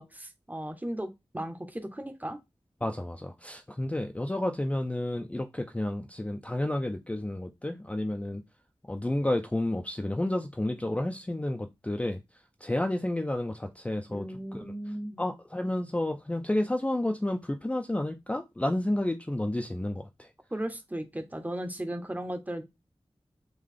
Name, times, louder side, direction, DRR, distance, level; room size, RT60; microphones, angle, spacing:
voice 1, 0.0-2.4 14.1-15.2 20.5-22.6, right 1 dB, 15° right, 0.6 m, -36 dB
voice 2, 2.8-8.4 8.9-14.3 14.5-14.6 15.2-20.3, left 1 dB, 15° left, 0.3 m, -31 dB
3.7 x 2.3 x 3.2 m
wide cardioid pair, 55°, 10 cm